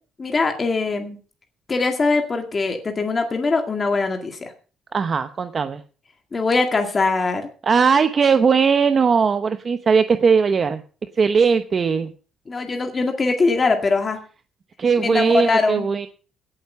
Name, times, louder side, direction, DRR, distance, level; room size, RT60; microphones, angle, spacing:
voice 1, 0.2-1.2 1.7-4.5 6.3-7.5 12.5-14.2 15.0-15.9, left 3 dB, 25° left, 4 dB, 2.0 m, -22 dB
voice 2, 4.9-5.8 7.6-10.8 11.2-12.1 14.8-16.1, right 5 dB, 35° right, 10 dB, 0.8 m, -18 dB
17.0 x 8.3 x 5.5 m, 0.38 s
cardioid pair, 145°, 0 cm